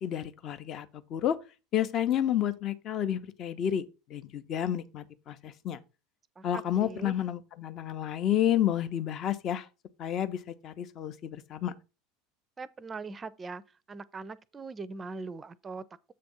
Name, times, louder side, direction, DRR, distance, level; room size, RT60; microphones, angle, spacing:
voice 1, 0.0-1.4 1.7-5.8 6.4-9.7 10.0-11.7, left 10 dB, 40° left, 0.6 m, -30 dB
voice 2, 6.4-7.2 12.6-13.6 13.9-16.1, right 4 dB, 20° right, 0.4 m, -41 dB
7.6 x 3.4 x 5.3 m
figure-of-eight pair, 75°, 0 cm